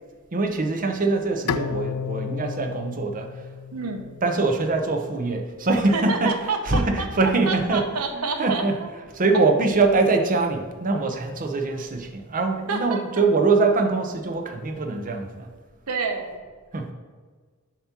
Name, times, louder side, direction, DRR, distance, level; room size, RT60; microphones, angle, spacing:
voice 1, 0.3-3.5 4.2-8.8 9.1-15.5 16.7-16.9, right 3 dB, 40° right, 4 dB, 0.7 m, -23 dB
Bowed string instrument, 1.5-4.7, left 7 dB, 85° left, 0.3 m, -32 dB
voice 2, 3.7-4.1 5.9-7.1 7.5-8.9 12.7-13.0 15.9-16.4, right 4 dB, 75° right, 4 dB, 0.9 m, -28 dB
7.1 x 2.9 x 5.9 m, 1.5 s
head